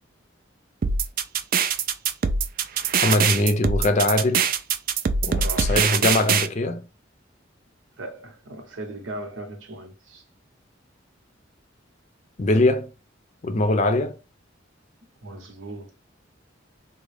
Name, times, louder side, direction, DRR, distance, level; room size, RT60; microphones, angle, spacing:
sound 1, 0.8-6.5, right 6 dB, 45° right, 0.4 m, -22 dB
voice 1, 3.0-4.5 5.2-6.8 12.4-12.9 13.4-14.2, left 2 dB, 35° left, 0.5 m, -22 dB
voice 2, 5.4-5.8 8.0-10.2 15.2-15.9, right 2 dB, 85° right, 1.0 m, -37 dB
3.6 x 2.2 x 3.2 m
head